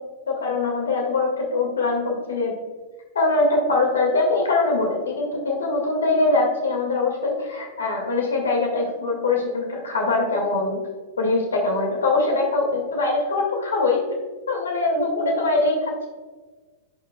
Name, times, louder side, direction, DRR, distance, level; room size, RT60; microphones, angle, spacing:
voice 1, 0.3-2.5 3.1-10.8 11.2-14.0 14.5-16.1, left 3 dB, 75° left, 0 dB, 1.9 m, -22 dB
16.5 x 5.4 x 2.3 m, 1.3 s
figure-of-eight pair, 100°, 0 cm